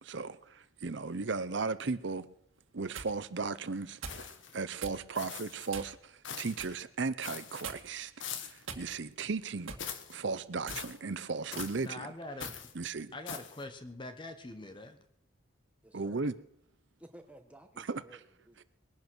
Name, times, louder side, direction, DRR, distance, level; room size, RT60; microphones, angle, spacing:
voice 1, 0.0-2.3 2.7-8.1 8.4-9.8 10.1-12.1 12.7-13.1 15.9-16.3 17.8-18.0, right 4 dB, 60° right, 0.7 m, -36 dB
sound 1, 2.6-3.1 4.0-4.3 4.8-5.0 5.7-6.1 6.6-6.8 7.6-8.0 8.6-9.2 9.7-9.9 10.5-10.9 11.6-11.7 12.4-12.6, right 5 dB, 80° right, 1.9 m, -43 dB
sound 2, 4.1-4.6 5.1-5.7 6.2-6.7 7.2-7.7 8.2-8.7 9.8-10.2 10.7-11.0 11.5-11.9 12.4-12.7 13.3-13.6, left 8 dB, 65° left, 1.3 m, -42 dB
voice 2, 11.8-12.5 13.1-15.0, left 2 dB, 25° left, 1.1 m, -43 dB
voice 3, 15.8-16.2 17.0-18.6, right 1 dB, 5° right, 1.5 m, -55 dB
21.0 x 10.5 x 6.3 m
head